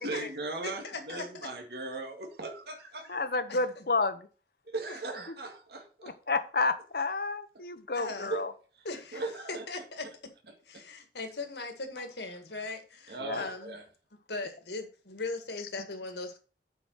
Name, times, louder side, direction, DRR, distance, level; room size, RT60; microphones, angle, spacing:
voice 1, 0.0-3.2 4.7-6.1 8.3-8.4 9.1-9.7 13.1-13.8, right 3 dB, 70° right, 2.0 m, -38 dB
voice 2, 0.6-1.5 3.0-3.2 3.5-3.8 4.9-5.2 7.9-8.3 8.8-9.2 9.5-10.1 10.7-13.7 14.3-16.4, left 3 dB, 75° left, 1.9 m, -39 dB
voice 3, 3.1-4.3 6.0-8.5 13.2-13.4, left 3 dB, 55° left, 0.9 m, -30 dB
8.3 x 5.1 x 6.5 m
head